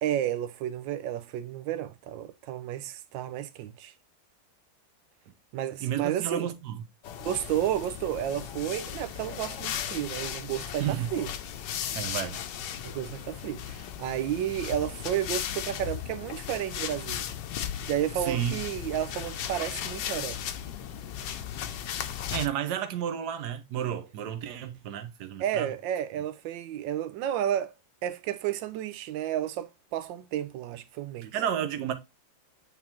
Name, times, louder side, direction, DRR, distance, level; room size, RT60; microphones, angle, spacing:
voice 1, 0.0-3.9 5.5-6.5 7.2-11.3 12.8-17.3 17.9-20.4 25.4-27.7 28.0-31.3, right 11 dB, 90° right, 1.3 m, -32 dB
voice 2, 5.8-6.8 10.8-11.1 11.9-12.4 18.2-18.6 22.3-25.7 31.3-31.9, right 10 dB, 65° right, 1.4 m, -31 dB
sound 1, 7.0-22.5, left 9 dB, 75° left, 1.3 m, -36 dB
8.5 x 3.9 x 2.9 m
omnidirectional pair, 2.0 m